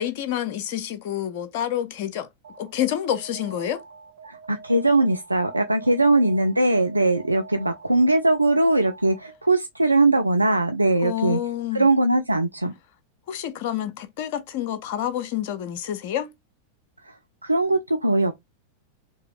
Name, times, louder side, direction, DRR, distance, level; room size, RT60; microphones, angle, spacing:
voice 1, 0.0-2.3 2.6-3.8 11.0-11.9 13.3-16.3, left 11 dB, 50° left, 0.7 m, -28 dB
Alarm, 2.4-9.5, right 5 dB, 65° right, 1.1 m, -44 dB
voice 2, 4.3-11.4 11.7-12.7 17.4-18.3, right 2 dB, 85° right, 0.3 m, -20 dB
3.6 x 2.9 x 3.1 m
figure-of-eight pair, 90°, 0 cm